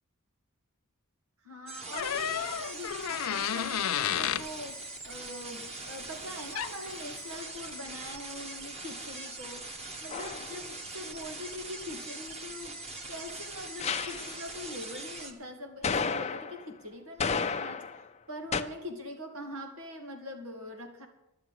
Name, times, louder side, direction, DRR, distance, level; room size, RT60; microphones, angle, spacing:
voice 1, 1.4-9.7 10.0-12.8 13.1-21.1, left 1 dB, 85° right, 3 dB, 2.7 m, -43 dB
sound 1, 1.7-15.3, right 2 dB, 30° right, 1.6 m, -42 dB
Door, 1.9-4.5 6.3-6.4 6.5-6.9, left 9 dB, 85° left, 0.5 m, -31 dB
sound 2, 10.1-10.5 13.8-14.3 15.8-16.7 17.2-18.1 18.5-18.6, left 5 dB, 30° left, 0.6 m, -32 dB
11.5 x 7.7 x 9.3 m, 0.93 s
head